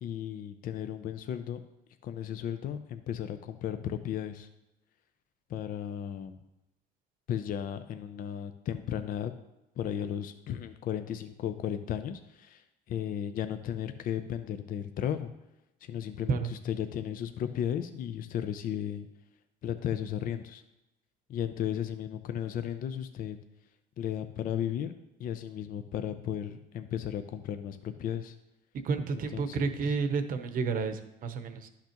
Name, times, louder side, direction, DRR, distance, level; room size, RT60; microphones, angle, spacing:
voice 1, 0.0-1.6 2.0-4.5 5.5-6.4 7.3-9.3 9.8-15.3 15.8-19.1 19.6-20.6 21.3-23.4 24.0-24.9 25.2-28.3 29.1-29.7, left 9 dB, 55° left, 9 dB, 0.5 m, -35 dB
voice 2, 28.8-31.7, right 4 dB, 55° right, 8 dB, 0.8 m, -30 dB
11.5 x 5.8 x 2.9 m, 0.93 s
cardioid pair, 110°, 17 cm